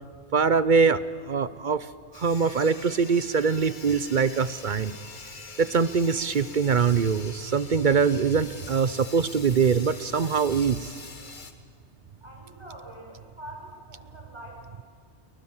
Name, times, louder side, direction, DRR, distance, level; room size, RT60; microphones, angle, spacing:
voice 1, 0.3-1.9 2.1-5.0 5.6-10.9, right 5 dB, 45° right, 16 dB, 0.8 m, -23 dB
Sawing, 2.1-11.5, left 3 dB, 45° left, 1.8 m, -44 dB
voice 2, 12.2-14.8, equal, 20° right, -1 dB, 6.7 m, -45 dB
29.5 x 22.5 x 7.3 m, 2.1 s
omnidirectional pair, 1.2 m